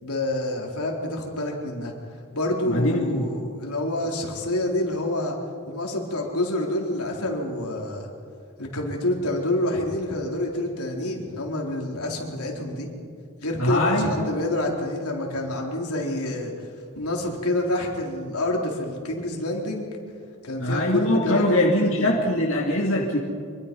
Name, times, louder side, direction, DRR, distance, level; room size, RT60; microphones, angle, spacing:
voice 1, 0.0-1.9 2.3-5.4 5.7-8.1 8.6-12.9 13.4-16.7 17.0-19.9 20.4-22.1, left 1 dB, 85° left, 0 dB, 4.0 m, -27 dB
voice 2, 2.7-3.3 13.6-14.3 20.6-23.2, left 1 dB, 60° left, -3 dB, 2.7 m, -22 dB
25.5 x 24.5 x 5.4 m, 2.2 s
head